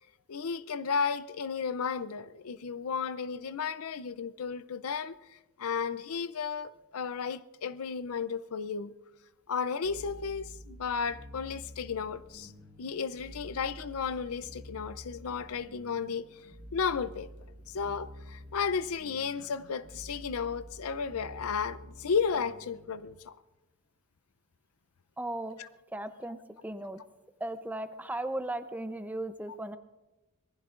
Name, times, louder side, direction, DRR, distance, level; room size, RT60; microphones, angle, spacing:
voice 1, 0.3-8.9 9.5-12.5 12.8-17.3 17.7-23.4 25.6-25.7, left 6 dB, 80° left, 0.5 m, -34 dB
sound 1, 9.8-23.2, equal, 50° right, 1.4 m, -49 dB
voice 2, 25.2-25.6 25.9-26.4 26.6-27.0 27.4-29.8, right 1 dB, 10° right, 0.6 m, -36 dB
26.0 x 19.0 x 2.5 m
head